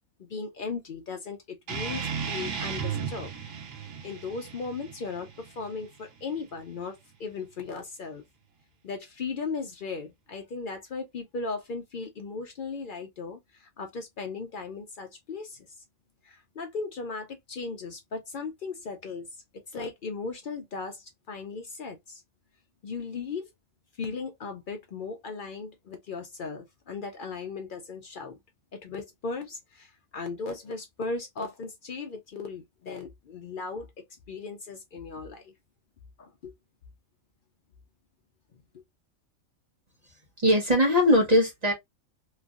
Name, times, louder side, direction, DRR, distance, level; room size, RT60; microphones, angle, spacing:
voice 1, 0.2-3.3 3.7-8.2 8.8-15.7 16.2-22.2 22.8-23.5 24.0-28.4 28.8-35.5 36.2-36.5, left 4 dB, 65° left, 0.5 m, -37 dB
sound 1, 1.7-6.7, right 6 dB, 65° right, 1.2 m, -35 dB
voice 2, 40.4-41.7, left 1 dB, 30° right, 1.0 m, -20 dB
3.0 x 2.5 x 2.3 m
omnidirectional pair, 1.5 m